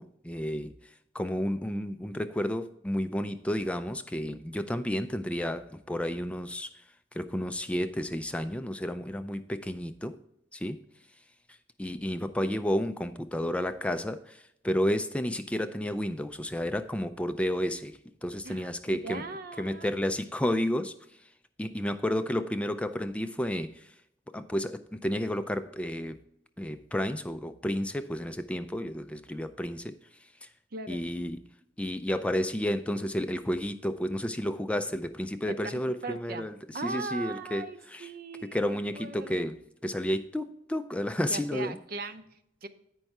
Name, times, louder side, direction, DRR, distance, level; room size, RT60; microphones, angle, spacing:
voice 1, 0.0-6.8 7.1-10.2 10.5-10.8 11.5-19.2 19.6-21.0 21.6-23.9 24.3-26.2 26.6-29.9 30.4-30.5 30.9-31.4 31.8-36.5 36.8-38.1 38.5-41.8, equal, 5° left, 10 dB, 0.3 m, -31 dB
voice 2, 18.4-19.9 30.7-31.0 35.5-36.5 36.7-39.5 41.3-42.7, right 3 dB, 55° right, 10 dB, 0.7 m, -39 dB
8.8 x 5.4 x 4.6 m, 0.76 s
head